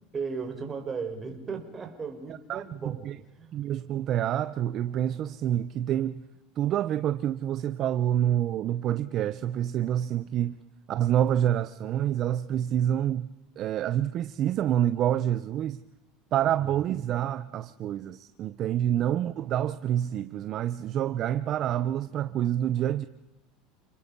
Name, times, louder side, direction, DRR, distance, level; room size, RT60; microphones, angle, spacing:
voice 1, 0.1-3.6 16.6-16.9 18.9-19.1, right 5 dB, 25° right, 4.7 m, -37 dB
voice 2, 3.5-6.2 6.6-10.6 10.9-13.3 13.6-15.8 16.3-23.1, right 11 dB, 45° right, 0.9 m, -27 dB
30.0 x 20.0 x 5.6 m
supercardioid pair, 120°, 0 cm